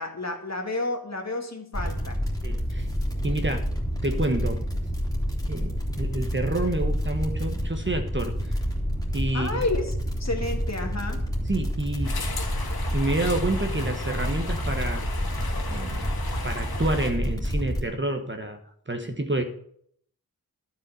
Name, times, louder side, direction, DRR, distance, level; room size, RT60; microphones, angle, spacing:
voice 1, 0.0-2.2 9.3-9.9 10.2-11.2, left 2 dB, 45° left, 3 dB, 2.1 m, -30 dB
sound 1, 1.7-17.8, equal, 10° left, 2.9 m, -29 dB
voice 2, 2.4-2.9 3.2-3.7 4.0-4.6 5.5-8.6 9.1-9.7 11.5-12.2 12.9-15.0 15.7-16.1 16.4-18.6 18.9-19.4, right 2 dB, 30° right, 6 dB, 1.4 m, -28 dB
sound 2, 12.0-17.1, left 3 dB, 80° left, 1.7 m, -36 dB
12.0 x 5.5 x 7.7 m, 0.66 s
wide cardioid pair, 65°, 36 cm